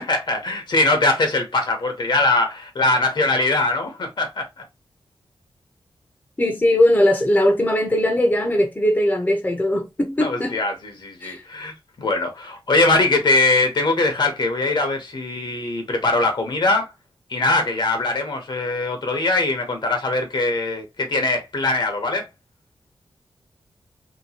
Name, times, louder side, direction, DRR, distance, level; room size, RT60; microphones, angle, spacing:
voice 1, 0.0-4.6 10.2-16.9 17.3-22.3, left 2 dB, 60° left, 0.9 m, -21 dB
voice 2, 6.4-10.6 11.2-11.4, left 1 dB, 20° left, 0.7 m, -19 dB
2.9 x 2.2 x 2.8 m
cardioid pair, 75°, 9 cm